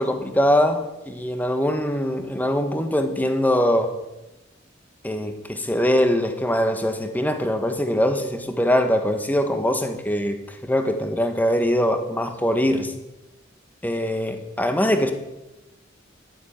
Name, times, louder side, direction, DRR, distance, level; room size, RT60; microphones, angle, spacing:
voice 1, 0.0-3.9 5.0-12.9 13.8-15.1, equal, 10° left, 6 dB, 1.4 m, -22 dB
12.0 x 9.0 x 9.0 m, 1.0 s
head